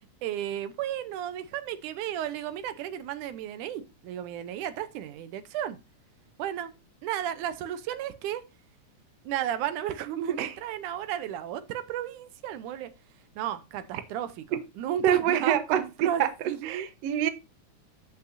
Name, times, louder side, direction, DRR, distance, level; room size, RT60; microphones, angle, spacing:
voice 1, 0.2-5.8 6.4-6.7 7.0-8.4 9.2-12.9 13.4-16.9, right 10 dB, 85° right, 2.3 m, -33 dB
voice 2, 15.0-17.3, right 10 dB, 70° right, 1.9 m, -26 dB
14.0 x 5.6 x 2.5 m
omnidirectional pair, 3.4 m